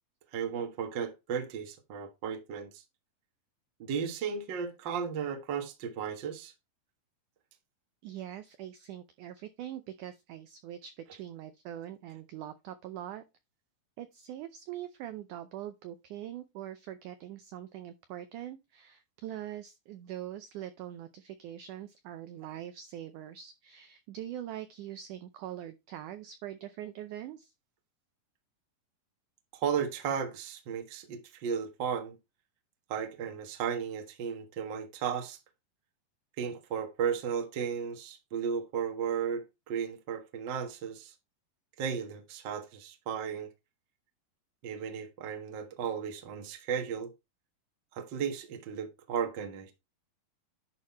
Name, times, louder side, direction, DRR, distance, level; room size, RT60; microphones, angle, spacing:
voice 1, 0.3-2.8 3.8-6.5 29.5-32.2 32.9-35.4 36.4-41.1 41.8-43.5 44.6-47.1 47.9-49.7, right 7 dB, 70° right, 1.1 m, -35 dB
voice 2, 8.0-13.2 14.0-27.5, right 11 dB, 85° right, 1.8 m, -43 dB
11.0 x 3.7 x 4.2 m
omnidirectional pair, 4.4 m